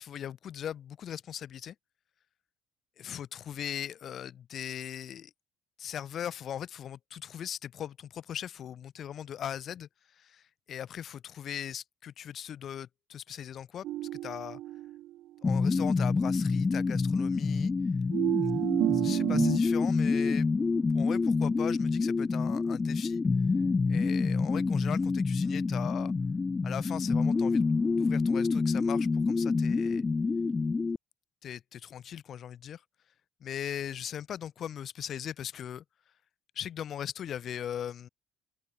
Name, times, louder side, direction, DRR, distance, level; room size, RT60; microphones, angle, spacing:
voice 1, 0.0-1.7 3.0-5.3 5.8-13.8 14.2-14.6 15.4-17.7 18.4-18.5 18.9-20.5 20.9-23.2 23.9-26.1 26.6-30.1 31.4-32.8 33.4-35.8 36.5-38.1, left 9 dB, 40° left, 3.4 m, -39 dB
sound 1, 13.8-15.2 18.1-19.6, right 14 dB, 55° right, 1.0 m, -30 dB
sound 2, 15.4-31.0, left 4 dB, 15° left, 0.3 m, -27 dB
open air
cardioid pair, 155°, 0 cm